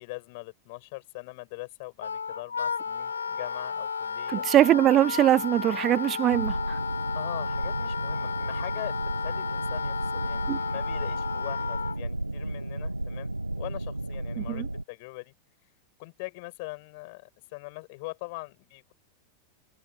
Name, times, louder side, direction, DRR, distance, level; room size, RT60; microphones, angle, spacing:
voice 1, 0.0-4.5 7.1-15.3 16.0-18.9, left 26 dB, 50° left, 7.4 m, -42 dB
Wind instrument woodwind instrument, 2.0-12.0, left 6 dB, 75° left, 1.6 m, -33 dB
voice 2, 4.3-6.8 10.5-10.6 14.4-14.7, right 12 dB, 30° right, 0.5 m, -22 dB
sound 1, 6.3-14.8, right 1 dB, 85° right, 1.8 m, -33 dB
figure-of-eight pair, 90°, 0 cm